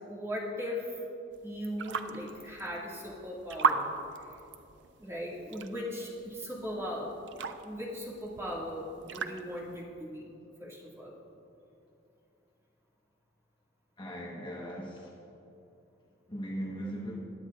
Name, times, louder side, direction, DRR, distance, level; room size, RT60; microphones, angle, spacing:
voice 1, 0.1-1.0 1.4-3.9 5.0-10.3 10.6-11.2, equal, 15° right, -4 dB, 2.0 m, -38 dB
sound 1, 1.3-9.8, right 5 dB, 75° right, 0.5 m, -37 dB
voice 2, 14.0-15.1 16.3-17.2, equal, 25° left, -3 dB, 1.1 m, -38 dB
21.0 x 8.9 x 2.4 m, 2.7 s
head